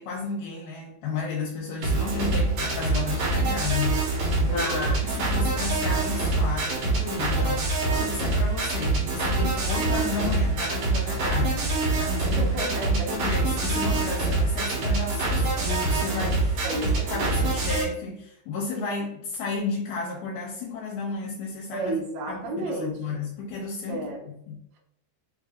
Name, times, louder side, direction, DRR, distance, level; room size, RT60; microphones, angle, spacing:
voice 1, 0.0-7.6 7.9-16.6 17.1-22.0 22.3-24.1 24.5-24.6, left 4 dB, 75° left, -4 dB, 2.6 m, -33 dB
sound 1, 1.8-17.8, right 2 dB, 60° right, 3.0 m, -25 dB
voice 2, 4.5-4.9 12.4-13.1 14.6-14.7 16.6-17.3 21.7-23.2 23.9-24.3, right 1 dB, 75° right, -2 dB, 3.0 m, -32 dB
7.2 x 2.6 x 2.5 m, 0.74 s
omnidirectional pair, 4.8 m